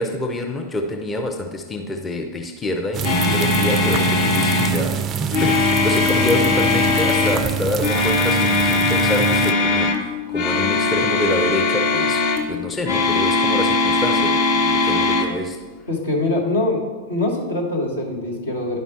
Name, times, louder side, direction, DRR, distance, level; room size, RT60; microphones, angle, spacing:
voice 1, 0.0-5.0 5.3-15.6, left 1 dB, 15° left, 3 dB, 0.6 m, -26 dB
sound 1, 2.9-9.5, right 7 dB, 30° right, 0.3 m, -25 dB
sound 2, 3.0-4.8 5.3-7.4 7.8-10.0 10.3-12.4 12.8-15.3, left 3 dB, 50° left, 0.9 m, -20 dB
voice 2, 15.9-16.8 17.1-18.8, left 2 dB, 75° left, -2 dB, 1.5 m, -23 dB
10.5 x 5.3 x 3.2 m, 1.4 s
figure-of-eight pair, 90°, 0 cm